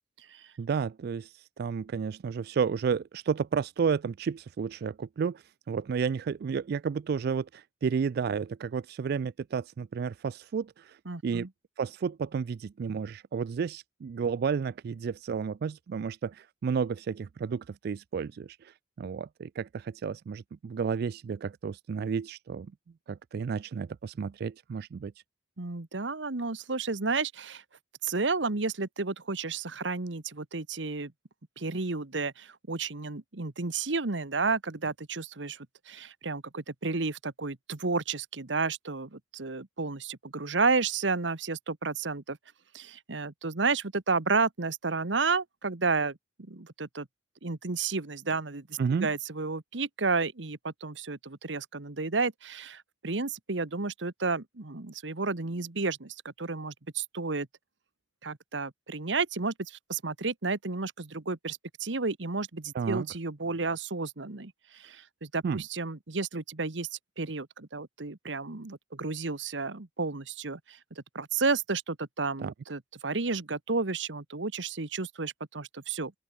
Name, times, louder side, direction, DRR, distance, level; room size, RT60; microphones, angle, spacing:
voice 1, 0.6-11.5 11.8-22.7 23.1-25.1 48.8-49.1 62.7-63.1 65.4-65.6 72.4-72.5, right 6 dB, 60° right, 0.3 m, -32 dB
voice 2, 11.0-11.5 25.6-27.6 28.0-31.1 31.6-42.4 42.7-47.1 47.4-57.5 58.2-76.1, right 4 dB, 90° right, 1.4 m, -32 dB
open air
head